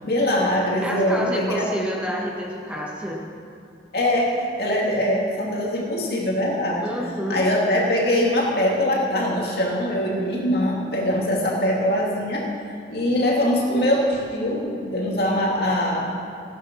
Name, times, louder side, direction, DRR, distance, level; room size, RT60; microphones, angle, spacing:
voice 1, 0.0-1.7 3.9-6.9 7.3-12.4 12.9-16.1, left 1 dB, 55° left, -3 dB, 2.8 m, -22 dB
voice 2, 0.8-3.2 6.8-7.4, equal, 5° right, -3 dB, 1.5 m, -29 dB
16.5 x 9.6 x 6.3 m, 2.6 s
head